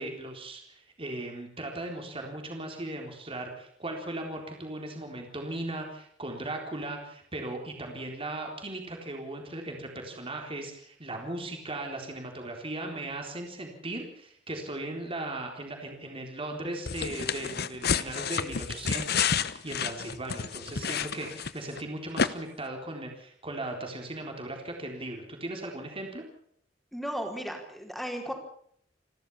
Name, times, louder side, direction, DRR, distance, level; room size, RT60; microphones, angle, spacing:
voice 1, 0.0-26.2, right 2 dB, 30° right, 2 dB, 4.0 m, -38 dB
sound 1, 16.9-21.8 22.2-22.3, left 6 dB, 55° left, 1.0 m, -30 dB
voice 2, 26.9-28.3, equal, ahead, 2 dB, 4.6 m, -35 dB
29.5 x 12.5 x 7.2 m, 0.65 s
head